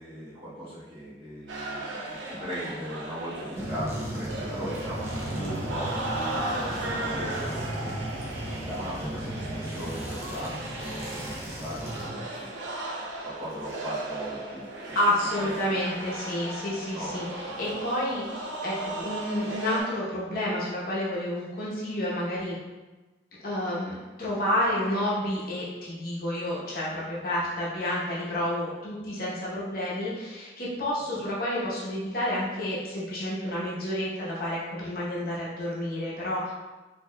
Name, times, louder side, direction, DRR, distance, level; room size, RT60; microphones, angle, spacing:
voice 1, 0.0-8.1 8.5-12.5 13.2-15.0 15.3-15.8 16.9-17.8 31.1-31.2, equal, 30° right, -11 dB, 1.4 m, -38 dB
sound 1, 1.5-19.8, right 2 dB, 90° right, 0.6 m, -36 dB
sound 2, 3.5-12.1, equal, 15° right, 0.6 m, -36 dB
voice 2, 14.9-22.6 23.4-36.5, left 1 dB, 50° left, -7 dB, 0.9 m, -30 dB
4.4 x 2.8 x 2.2 m, 1.2 s
head